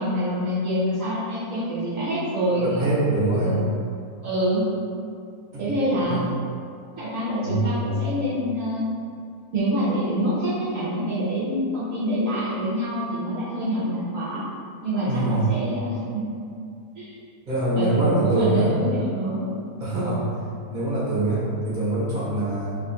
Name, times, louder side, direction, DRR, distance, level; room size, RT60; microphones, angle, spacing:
voice 1, 0.0-2.9 3.4-3.6 4.2-4.7 5.6-6.2 7.0-8.9 9.5-14.4 14.8-16.2 17.0-17.2 17.8-19.6 19.9-20.2, equal, 65° right, -10 dB, 1.1 m, -26 dB
voice 2, 2.5-3.6 5.5-5.6 6.1-6.2 7.4-7.7 15.0-15.5 17.5-18.7 19.8-20.2 20.7-22.8, right 2 dB, 35° right, -9 dB, 1.1 m, -24 dB
3.0 x 2.4 x 4.2 m, 2.4 s
omnidirectional pair, 1.6 m